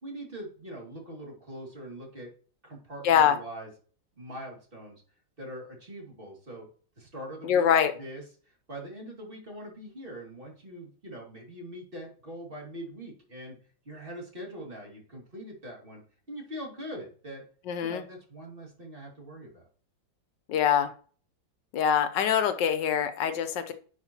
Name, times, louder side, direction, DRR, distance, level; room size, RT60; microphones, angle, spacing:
voice 1, 0.0-2.3 2.6-3.7 4.2-5.0 5.4-6.7 7.0-7.7 8.0-13.6 13.8-16.0 16.3-17.4 17.8-19.7, equal, 30° right, -1 dB, 2.5 m, -42 dB
voice 2, 3.0-3.3 7.4-7.9 17.7-18.0 20.5-20.9 21.7-23.7, left 8 dB, 75° left, 10 dB, 1.4 m, -24 dB
9.8 x 5.4 x 2.9 m, 0.42 s
omnidirectional pair, 2.0 m